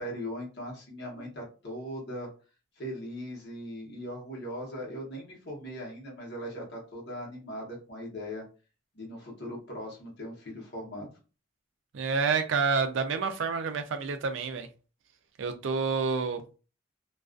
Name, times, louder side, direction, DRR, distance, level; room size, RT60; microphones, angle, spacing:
voice 1, 0.0-2.3 2.8-8.4 8.9-11.1, equal, 55° left, 0.9 m, -39 dB
voice 2, 11.9-14.7 15.4-16.4, right 5 dB, 65° right, 0.4 m, -28 dB
2.3 x 2.3 x 2.4 m
head